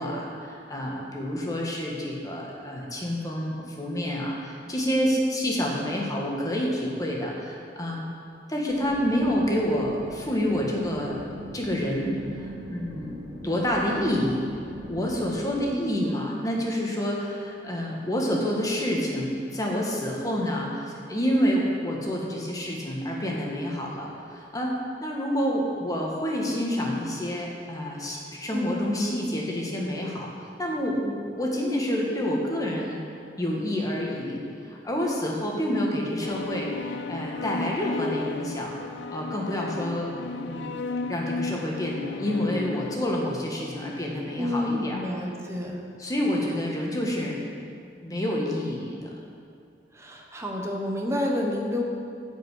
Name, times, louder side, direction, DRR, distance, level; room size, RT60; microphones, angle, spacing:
voice 1, 0.0-8.1 8.5-11.2 11.5-13.2 13.4-14.5 14.9-30.3 30.6-33.0 33.4-38.7 39.1-40.1 40.4-40.8 41.1-45.3 46.0-47.4 47.7-49.1, equal, 20° left, -2 dB, 1.6 m, -28 dB
sound 1, 8.7-15.6, right 1 dB, 80° right, 2.1 m, -41 dB
voice 2, 28.5-28.8 44.4-45.8 49.9-51.8, left 1 dB, 15° right, 0 dB, 1.1 m, -29 dB
sound 2, 36.2-43.0, left 3 dB, 90° left, 0.4 m, -34 dB
10.0 x 5.3 x 8.3 m, 2.4 s
head